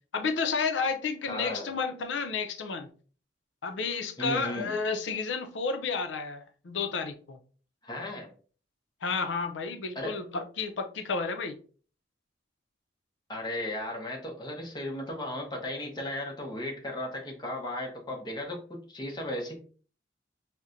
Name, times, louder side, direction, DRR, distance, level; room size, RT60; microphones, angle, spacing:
voice 1, 0.1-2.9 3.6-7.4 9.0-11.6, left 5 dB, 80° left, 0.5 m, -31 dB
voice 2, 1.3-1.7 4.2-4.7 7.8-8.3 9.9-10.2 13.3-19.6, left 1 dB, 25° left, 0.7 m, -35 dB
4.1 x 2.1 x 2.5 m
head